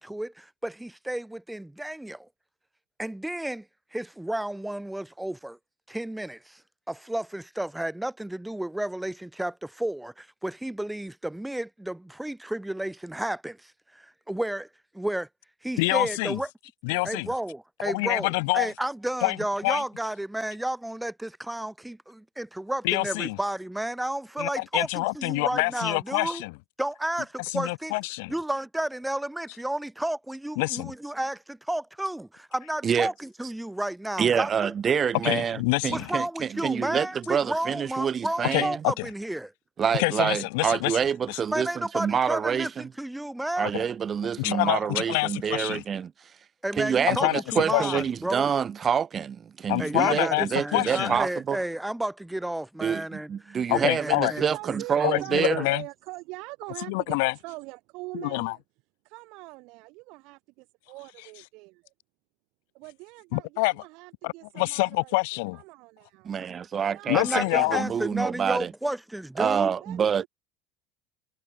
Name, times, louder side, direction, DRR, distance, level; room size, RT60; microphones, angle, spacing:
voice 1, 0.0-2.3 3.0-3.6 3.9-5.6 5.9-6.6 6.9-14.7 14.9-15.3 15.6-16.5 17.0-26.4 26.8-27.9 28.3-34.7 35.9-39.5 41.5-43.7 46.6-48.5 49.8-55.1 67.1-69.7, right 1 dB, 5° right, 3.4 m, -32 dB
voice 2, 15.8-16.4 16.8-17.3 17.8-18.7 19.2-19.4 19.6-19.8 22.8-23.4 24.4-26.5 27.5-28.3 30.6-30.9 35.2-36.0 38.5-39.0 40.0-41.0 41.3-41.4 44.4-45.8 47.1-47.4 47.7-48.0 49.7-51.2 53.7-54.3 55.0-55.8 56.9-57.3 58.1-58.5 63.3-63.7 64.2-65.6 67.1-67.9, left 28 dB, 75° left, 1.0 m, -26 dB
voice 3, 34.2-38.8 39.8-42.9 43.6-46.1 46.7-51.6 52.8-55.6 66.2-68.7 69.4-70.2, right 7 dB, 40° right, 0.8 m, -27 dB
voice 4, 54.1-58.6 59.0-61.9 62.7-65.2 65.5-66.4 66.8-68.0 69.8-70.3, right 25 dB, 65° right, 5.7 m, -42 dB
hypercardioid pair, 75°, 0 cm